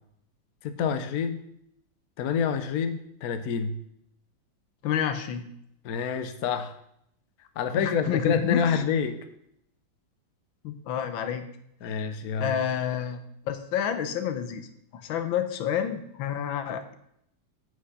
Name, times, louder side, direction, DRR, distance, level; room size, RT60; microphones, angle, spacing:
voice 1, 0.6-1.4 2.2-3.8 5.8-6.7 7.6-9.2 11.8-12.6, left 6 dB, 60° left, 8 dB, 1.2 m, -27 dB
voice 2, 4.8-5.5 7.7-8.8 10.6-11.4 11.8-12.0 12.4-13.2 13.5-14.7 14.9-16.9, left 9 dB, 85° left, 8 dB, 1.7 m, -29 dB
8.4 x 7.6 x 5.6 m, 0.74 s
omnidirectional pair, 2.1 m